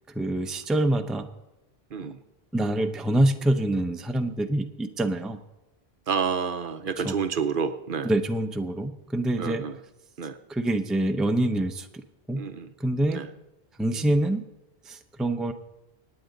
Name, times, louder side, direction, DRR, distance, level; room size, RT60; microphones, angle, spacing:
voice 1, 0.1-1.3 2.5-5.4 7.0-7.1 8.0-9.6 10.5-11.9 12.3-12.4 12.8-13.2 13.8-14.4 14.8-15.5, right 1 dB, ahead, 6 dB, 0.6 m, -25 dB
voice 2, 6.1-8.1 9.4-9.7 10.2-10.4 12.3-12.7 13.1-13.3 13.9-14.1, right 6 dB, 60° right, 10 dB, 0.9 m, -29 dB
25.0 x 9.3 x 3.9 m, 1.0 s
omnidirectional pair, 1.0 m